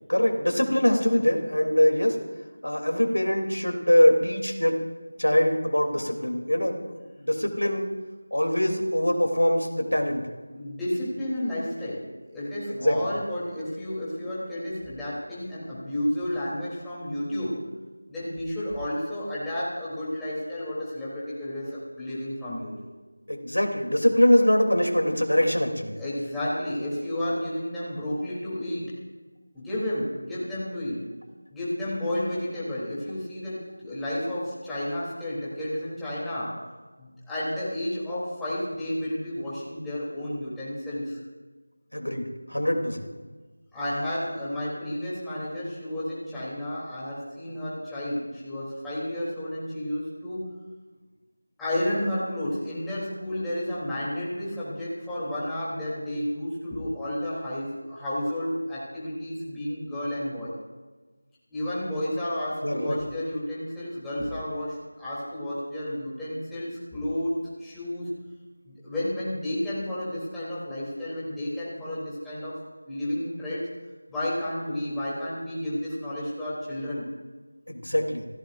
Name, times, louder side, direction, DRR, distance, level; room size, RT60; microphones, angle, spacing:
voice 1, 0.1-2.2 2.6-4.8 5.2-6.8 7.2-7.9 8.3-10.2 12.7-13.1 23.3-25.9 41.9-43.1 62.6-63.0 77.7-78.3, equal, 90° left, 2 dB, 3.1 m, -23 dB
voice 2, 10.5-17.6 18.1-22.9 26.0-28.9 29.5-31.0 31.5-36.5 37.0-41.2 43.7-50.5 51.6-60.5 61.5-67.3 67.6-68.1 68.6-73.7 74.1-77.0, left 1 dB, 5° left, -11 dB, 3.3 m, -31 dB
29.0 x 16.0 x 2.6 m, 1.3 s
figure-of-eight pair, 170°, 0 cm